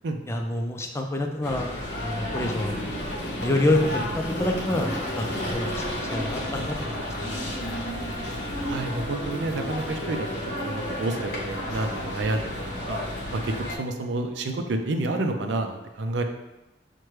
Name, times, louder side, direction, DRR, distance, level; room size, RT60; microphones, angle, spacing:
voice 1, 0.3-1.7 2.0-3.0 3.4-4.9 5.2-7.0 7.3-7.8, left 1 dB, 15° left, 2 dB, 0.4 m, -27 dB
sound 1, 1.4-13.8, left 1 dB, 75° left, 0.8 m, -31 dB
voice 2, 8.6-13.0 13.3-16.2, right 2 dB, 85° right, 5 dB, 0.5 m, -29 dB
5.8 x 2.2 x 3.2 m, 0.97 s
head